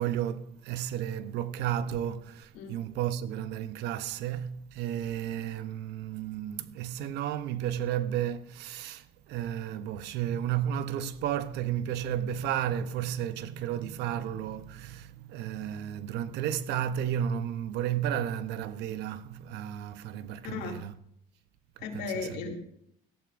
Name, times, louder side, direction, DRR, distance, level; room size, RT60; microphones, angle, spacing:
voice 1, 0.0-20.9 21.9-22.4, right 10 dB, 85° right, 0.8 m, -33 dB
voice 2, 20.4-20.8 21.8-22.5, left 5 dB, 85° left, 2.5 m, -36 dB
18.5 x 13.5 x 2.6 m
cardioid pair, 110°, 17 cm